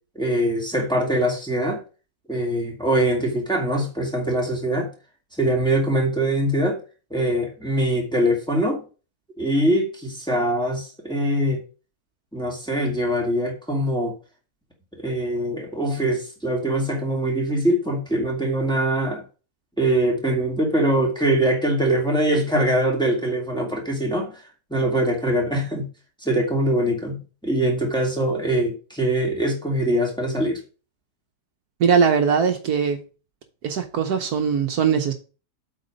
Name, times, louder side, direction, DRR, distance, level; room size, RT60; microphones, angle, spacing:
voice 1, 0.2-1.8 2.3-4.9 5.4-6.8 7.1-8.8 9.4-11.6 12.3-14.1 15.0-19.3 19.8-24.4 24.7-25.9 26.2-30.6, right 1 dB, 5° left, 1.8 m, -23 dB
voice 2, 31.8-33.0 33.6-35.1, right 6 dB, 65° right, 1.3 m, -20 dB
8.0 x 4.5 x 5.1 m
omnidirectional pair, 1.8 m